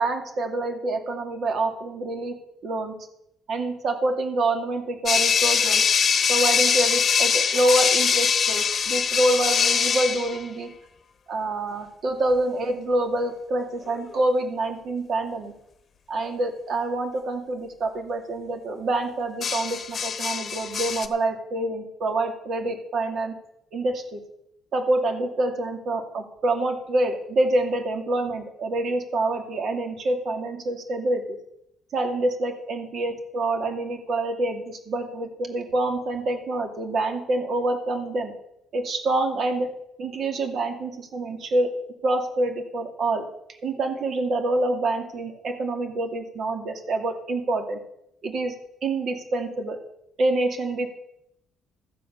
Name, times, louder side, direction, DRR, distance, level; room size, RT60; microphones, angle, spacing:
voice 1, 0.0-2.4 2.6-3.0 3.5-5.8 6.3-10.7 11.3-15.5 16.1-23.4 23.7-24.2 24.7-31.2 31.9-38.3 38.7-39.7 40.0-41.7 42.0-43.3 43.6-47.8 48.2-48.5 48.8-49.8 50.2-50.9, right 2 dB, 55° right, 4 dB, 2.4 m, -26 dB
sound 1, 5.1-10.4 13.9-14.2 19.4-21.1, left 6 dB, 45° left, 1.0 m, -22 dB
14.0 x 7.7 x 6.8 m, 0.77 s
cardioid pair, 105°, 0 cm